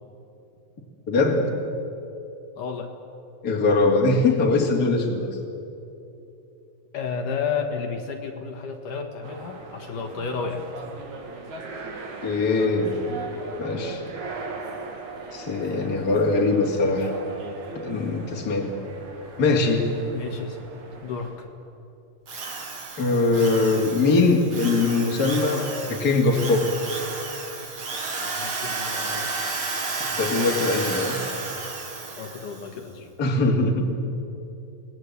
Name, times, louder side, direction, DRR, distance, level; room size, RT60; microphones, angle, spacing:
voice 1, 1.1-1.5 3.4-5.4 12.2-13.0 13.6-14.0 15.3-17.1 17.7-18.8 19.4-19.9 23.0-26.7 30.2-31.2 33.2-34.0, left 3 dB, 30° left, 1 dB, 2.8 m, -22 dB
voice 2, 2.6-2.9 6.9-10.8 20.1-20.6 21.0-21.5 28.2-29.5 32.2-33.1, left 5 dB, 70° left, 3 dB, 3.1 m, -32 dB
sound 1, 9.2-21.4, right 3 dB, 55° right, 3.6 m, -38 dB
Drill, 22.3-32.7, right 3 dB, 40° right, 2.8 m, -32 dB
29.5 x 20.0 x 8.2 m, 2.8 s
omnidirectional pair, 4.0 m